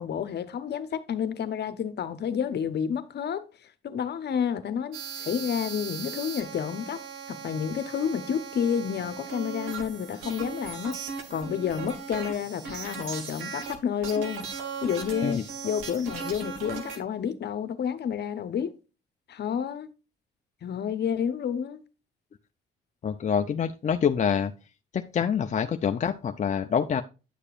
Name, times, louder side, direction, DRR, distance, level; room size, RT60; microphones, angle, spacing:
voice 1, 0.0-3.4 3.8-7.0 7.3-11.0 11.3-14.5 14.8-18.7 19.3-19.9 20.6-21.8, left 8 dB, 60° left, 1.0 m, -30 dB
sound 1, 4.9-13.8 14.0-17.0, right 6 dB, 85° right, 1.5 m, -38 dB
voice 2, 23.0-24.5 24.9-27.0, left 7 dB, 35° left, 0.6 m, -26 dB
10.0 x 6.6 x 2.5 m
supercardioid pair, 70°, 20 cm